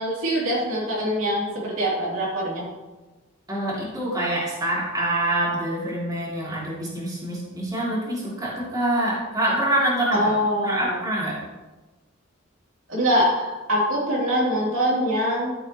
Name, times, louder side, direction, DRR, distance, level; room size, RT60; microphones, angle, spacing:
voice 1, 0.0-2.7 10.1-11.0 12.9-15.5, equal, 75° right, -5 dB, 3.0 m, -23 dB
voice 2, 3.5-10.3 10.6-11.4, right 1 dB, 20° right, -7 dB, 3.0 m, -25 dB
13.0 x 7.1 x 3.0 m, 1.2 s
head